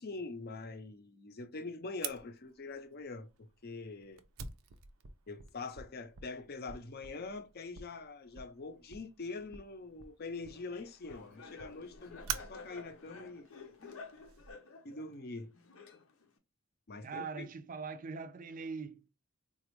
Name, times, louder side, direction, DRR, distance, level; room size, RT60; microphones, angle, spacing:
voice 1, 0.0-4.2 5.3-13.5 13.8-13.9 14.8-15.5 16.9-17.5, left 3 dB, 50° left, 0.6 m, -44 dB
Fire, 2.0-14.5, right 7 dB, 90° right, 0.5 m, -48 dB
Laughter, 10.5-16.4, left 4 dB, 85° left, 0.8 m, -52 dB
voice 2, 17.0-19.1, right 5 dB, 40° right, 0.4 m, -42 dB
4.1 x 2.3 x 3.0 m
head